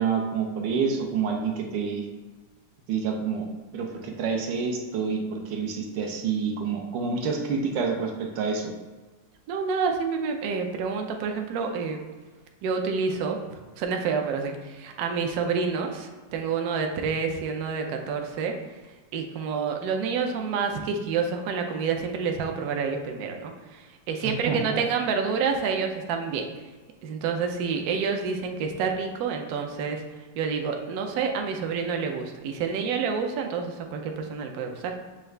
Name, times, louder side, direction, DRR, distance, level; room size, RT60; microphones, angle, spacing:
voice 1, 0.0-2.1 2.9-3.5 3.7-8.7 24.2-24.8, right 5 dB, 90° right, 2 dB, 1.4 m, -28 dB
voice 2, 9.5-12.0 12.6-18.6 19.1-26.5 27.0-30.0 30.4-35.0, right 5 dB, 70° right, 4 dB, 0.9 m, -28 dB
6.7 x 2.4 x 3.2 m, 1.3 s
omnidirectional pair, 1.9 m